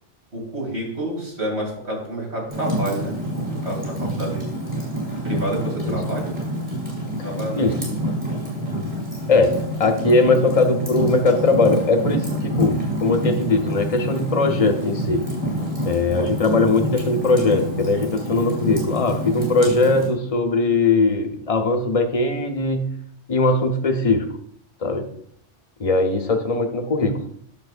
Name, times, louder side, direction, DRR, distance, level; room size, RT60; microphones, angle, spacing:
voice 1, 0.3-3.1 3.5-4.5 5.2-6.4 7.2-8.0, right 1 dB, 60° right, -3 dB, 3.1 m, -29 dB
Fire, 2.5-20.1, equal, 25° right, 4.0 m, -27 dB
voice 2, 9.3-15.3 15.8-22.9 23.3-24.3 24.8-25.1 25.8-27.2, left 3 dB, 35° left, 5 dB, 0.8 m, -20 dB
10.5 x 7.0 x 2.5 m, 0.65 s
omnidirectional pair, 1.3 m